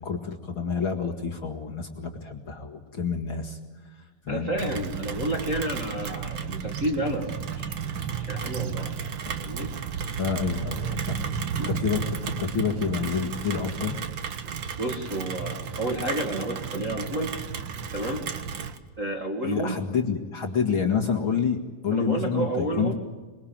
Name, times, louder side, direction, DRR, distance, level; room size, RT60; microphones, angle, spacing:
voice 1, 0.0-3.6 3.8-4.5 10.2-11.2 11.7-14.0 19.4-21.6 21.8-22.9, left 6 dB, 45° left, 2 dB, 2.3 m, -28 dB
voice 2, 4.3-9.0 9.4-9.7 11.6-11.7 14.8-17.4 17.9-18.3 19.0-19.8 21.9-22.9, right 1 dB, 30° right, 1 dB, 1.9 m, -31 dB
Rain, 4.6-18.8, right 6 dB, 55° right, 1.4 m, -33 dB
27.0 x 22.0 x 8.8 m, 1.3 s
omnidirectional pair, 3.8 m